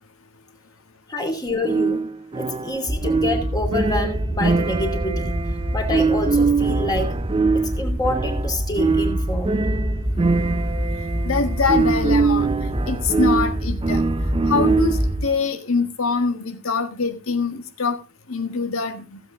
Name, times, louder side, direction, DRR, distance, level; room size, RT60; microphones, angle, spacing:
voice 1, 1.1-2.0 2.3-5.4 5.7-7.2 7.5-9.6, left 1 dB, 20° left, 4 dB, 2.6 m, -27 dB
sound 1, 1.6-15.2, right 4 dB, 25° right, 0.4 m, -23 dB
sound 2, 2.9-15.2, equal, 5° right, 1.7 m, -26 dB
voice 2, 11.3-12.5 12.9-14.0 14.4-18.0 18.3-19.2, left 4 dB, 80° left, 7 dB, 1.6 m, -24 dB
15.5 x 8.0 x 3.7 m, 0.31 s
head